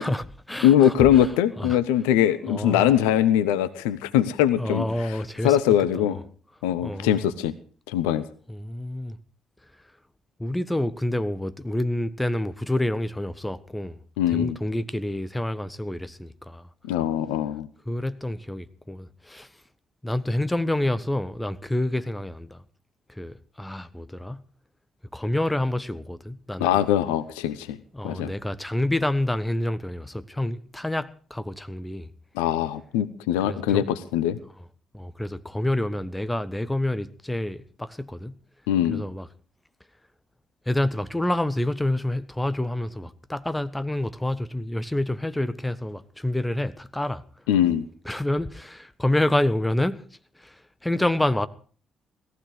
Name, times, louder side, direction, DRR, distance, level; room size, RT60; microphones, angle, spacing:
voice 1, 0.0-1.3 1.6-1.8 2.5-2.9 4.6-5.6 6.0-6.2 6.8-7.3 8.5-9.2 10.4-14.0 14.3-16.7 17.9-19.5 20.0-22.6 23.1-24.4 25.1-26.8 27.9-32.1 33.4-33.9 34.9-38.3 38.9-39.3 40.6-47.2 48.0-50.0 50.4-51.5, left 1 dB, 10° left, 1.4 m, -28 dB
voice 2, 0.6-4.8 5.4-6.2 6.6-7.5 7.9-8.2 14.2-14.6 16.8-17.7 26.6-27.8 28.0-28.3 32.3-34.4 38.7-39.0 47.5-47.8, left 11 dB, 75° left, 0.8 m, -22 dB
18.0 x 15.0 x 4.9 m
figure-of-eight pair, 45°, 0 cm